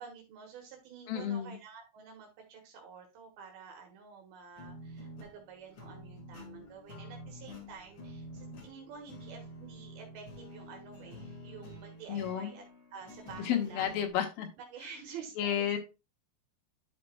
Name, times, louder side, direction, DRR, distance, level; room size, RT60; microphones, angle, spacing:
voice 1, 0.0-12.6 12.9-13.9 14.6-15.7, right 6 dB, 80° right, 2 dB, 3.2 m, -49 dB
voice 2, 1.1-1.6 12.1-12.5 13.4-14.5 15.4-15.8, left 9 dB, 80° left, 4 dB, 3.1 m, -31 dB
sound 1, 4.6-14.1, equal, 40° left, 2.2 m, -48 dB
11.0 x 5.5 x 2.3 m, 0.27 s
omnidirectional pair, 4.3 m